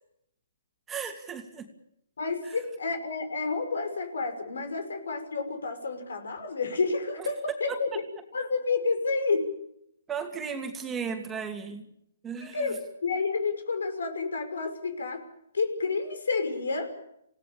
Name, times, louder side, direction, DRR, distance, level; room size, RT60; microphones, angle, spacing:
voice 1, 0.9-1.7 7.2-7.3 7.7-7.8 10.1-11.8 12.2-12.7, right 6 dB, 10° right, 4 dB, 2.5 m, -35 dB
voice 2, 2.2-7.9 8.3-9.5 12.4-15.3 15.5-17.0, left 4 dB, 80° left, 9 dB, 5.8 m, -30 dB
28.0 x 17.5 x 7.1 m, 0.75 s
hypercardioid pair, 155°, 0 cm